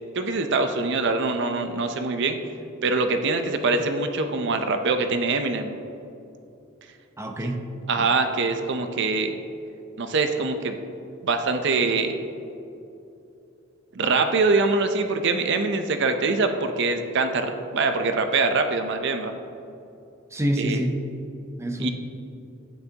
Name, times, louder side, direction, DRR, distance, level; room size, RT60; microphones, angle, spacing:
voice 1, 0.1-2.4 2.8-5.7 7.9-9.4 10.0-10.7 11.2-12.2 13.9-19.3 20.6-20.8 21.8-21.9, right 3 dB, 60° right, 7 dB, 0.6 m, -24 dB
voice 2, 7.2-7.7 8.0-8.1 20.3-21.0 21.6-21.9, right 1 dB, 15° right, 3 dB, 0.7 m, -26 dB
12.0 x 9.1 x 2.9 m, 2.8 s
head